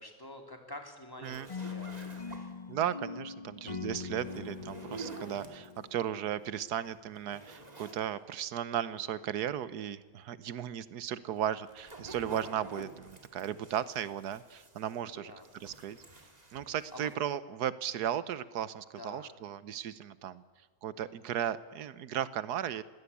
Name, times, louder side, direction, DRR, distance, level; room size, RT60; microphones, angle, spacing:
voice 1, 0.0-2.6 15.0-15.5 16.5-17.1 19.0-19.3, left 1 dB, 15° left, 3 dB, 2.8 m, -48 dB
sound 1, 1.2-2.7 4.1-5.9 6.4-6.5 6.9-8.0 8.4-8.5 11.3-15.1 15.4-17.1, right 3 dB, 25° right, 2.4 m, -49 dB
sound 2, 1.5-6.6, left 5 dB, 40° left, 0.5 m, -42 dB
voice 2, 2.7-16.0 16.5-20.4 20.8-22.8, right 10 dB, 85° right, 16 dB, 1.4 m, -36 dB
21.5 x 16.5 x 8.4 m, 1.4 s
omnidirectional pair, 1.7 m